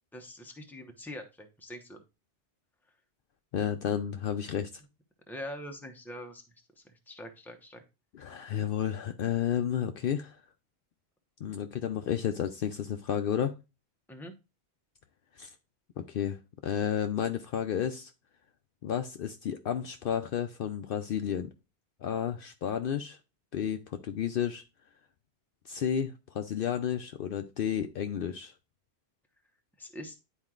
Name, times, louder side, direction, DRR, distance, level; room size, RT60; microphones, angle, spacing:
voice 1, 0.1-2.0 5.3-6.4 7.1-7.8 8.3-8.6 14.1-14.3 29.8-30.2, left 1 dB, ahead, 0.8 m, -43 dB
voice 2, 3.5-4.7 8.1-10.4 11.4-13.5 15.4-15.5 16.0-18.1 18.8-21.5 22.0-23.2 23.5-24.6 25.7-28.5, left 9 dB, 65° left, 0.7 m, -32 dB
10.5 x 4.5 x 2.4 m
omnidirectional pair, 1.1 m